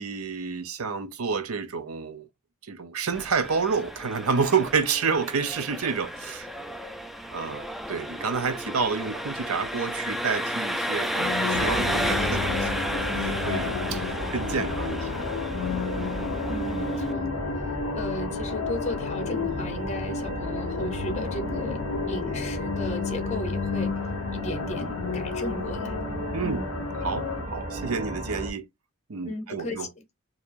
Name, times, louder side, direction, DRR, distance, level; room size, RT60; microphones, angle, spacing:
voice 1, 0.0-2.3 2.6-6.5 7.3-12.7 13.0-15.2 26.3-26.6 27.0-28.7 29.1-29.9, right 5 dB, 85° right, 0.7 m, -29 dB
Engine, 3.1-17.1, equal, ahead, 0.3 m, -32 dB
sound 1, 11.2-27.4, left 7 dB, 85° left, 0.3 m, -33 dB
sound 2, 11.5-28.5, right 1 dB, 35° right, 1.7 m, -33 dB
voice 2, 16.5-24.0 24.3-26.0 26.4-26.7 29.3-30.0, left 1 dB, 30° left, 0.7 m, -35 dB
4.5 x 2.8 x 2.5 m
head